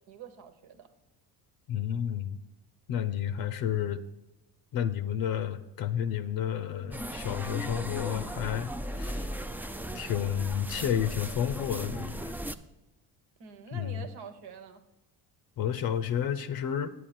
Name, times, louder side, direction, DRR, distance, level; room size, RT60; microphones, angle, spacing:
voice 1, 0.1-0.9 13.4-14.8, right 6 dB, 75° right, 8 dB, 1.3 m, -46 dB
voice 2, 1.7-2.4 2.9-4.0 4.7-9.3 9.9-12.4 13.7-14.0 15.6-16.9, left 9 dB, 65° left, 10 dB, 0.7 m, -31 dB
sound 1, 6.9-12.5, right 1 dB, 5° right, 0.3 m, -37 dB
9.2 x 8.4 x 4.3 m, 1.0 s
cardioid pair, 100°, 39 cm